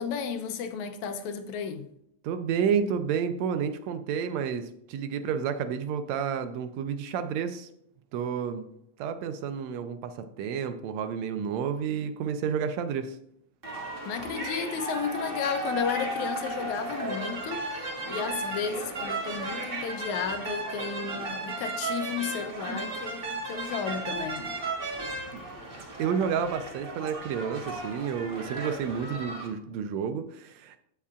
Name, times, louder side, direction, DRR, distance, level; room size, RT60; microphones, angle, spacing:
voice 1, 0.0-1.9 14.1-24.5, left 6 dB, 80° left, 2.0 m, -33 dB
voice 2, 2.2-7.7 8.1-8.7 9.0-13.2 25.3-25.4 26.0-30.8, right 7 dB, 75° right, 1.8 m, -30 dB
sound 1, 13.6-29.5, right 2 dB, 60° right, 0.5 m, -35 dB
sound 2, 14.9-27.0, right 1 dB, 45° right, 1.5 m, -49 dB
15.5 x 5.6 x 2.4 m
omnidirectional pair, 3.4 m